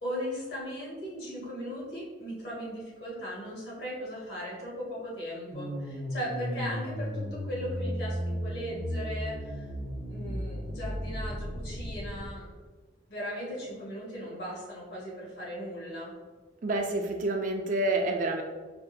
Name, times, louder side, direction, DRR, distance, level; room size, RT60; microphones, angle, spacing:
voice 1, 0.0-9.7 10.1-12.5 13.1-16.1, equal, 60° left, -6 dB, 1.4 m, -38 dB
sound 1, 5.5-12.3, equal, 80° left, 1.3 m, -35 dB
voice 2, 16.6-18.4, right 2 dB, 40° right, 2 dB, 0.4 m, -28 dB
5.0 x 2.5 x 2.6 m, 1.4 s
head